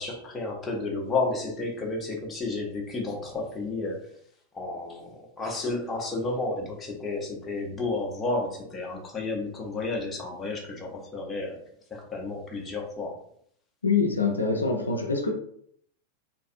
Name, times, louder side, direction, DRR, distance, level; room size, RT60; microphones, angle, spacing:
voice 1, 0.0-4.2 4.5-11.6 11.9-13.1, left 3 dB, 20° left, 0 dB, 0.6 m, -32 dB
voice 2, 13.8-15.3, left 4 dB, 80° left, 2 dB, 0.4 m, -25 dB
2.5 x 2.4 x 2.5 m, 0.66 s
figure-of-eight pair, 90°, 0 cm